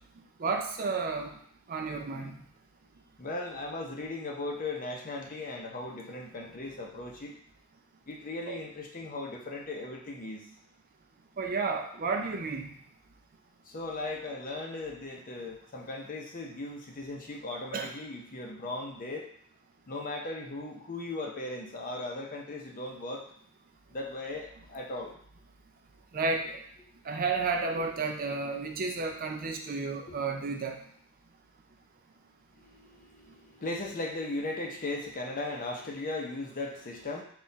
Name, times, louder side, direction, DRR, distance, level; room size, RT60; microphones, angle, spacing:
voice 1, 0.4-1.3 1.7-2.4 8.5-8.6 11.4-12.7 17.7-17.9 26.1-26.6 27.1-30.8, right 4 dB, 40° right, 3 dB, 0.4 m, -31 dB
voice 2, 3.2-7.3 8.1-10.4 13.7-19.2 19.9-23.2 23.9-24.5 24.7-25.1 27.7-27.9 33.6-37.2, left 2 dB, 40° left, 0 dB, 0.6 m, -37 dB
4.1 x 2.4 x 3.9 m, 0.63 s
head